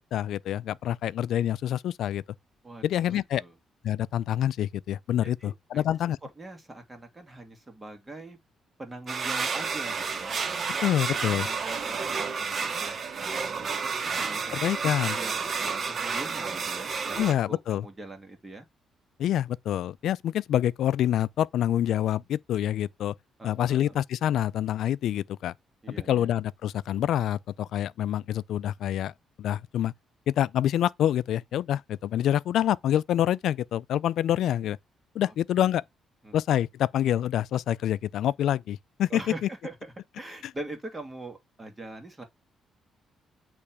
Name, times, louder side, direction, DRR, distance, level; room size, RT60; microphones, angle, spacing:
voice 1, 0.0-2.2 2.8-3.4 3.8-6.2 10.8-11.5 14.5-15.2 17.2-17.8 19.2-23.1 23.4-25.5 26.1-29.1 29.4-29.9 30.3-34.8 35.1-35.8 36.3-39.5, left 11 dB, 75° left, 0.4 m, -26 dB
voice 2, 2.6-3.5 5.2-5.8 6.4-8.4 8.8-10.4 11.1-14.6 14.8-18.6 23.4-23.9 25.8-26.3 35.2-35.7 36.2-36.4 39.1-42.2, right 2 dB, 20° right, 2.1 m, -43 dB
sound 1, 9.1-17.3, right 5 dB, 45° right, 1.0 m, -30 dB
8.5 x 3.3 x 4.8 m
cardioid pair, 90°, 0 cm